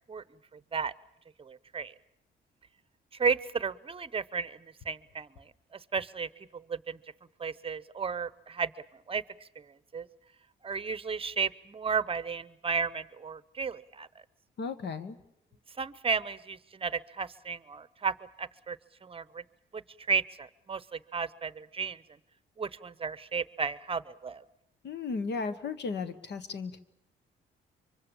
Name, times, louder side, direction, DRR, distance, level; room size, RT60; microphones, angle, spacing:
voice 1, 0.5-0.9 1.4-1.9 3.1-5.4 5.7-7.0 7.4-8.7 9.1-9.7 9.9-10.1 10.6-14.1 15.8-18.8 19.0-19.4 19.7-19.8 20.1-22.0 22.6-24.4, right 5 dB, 30° right, 17 dB, 0.8 m, -33 dB
voice 2, 14.6-15.2 24.8-26.8, left 4 dB, 60° left, 11 dB, 1.4 m, -35 dB
24.5 x 24.5 x 7.1 m, 0.76 s
cardioid pair, 90°, 20 cm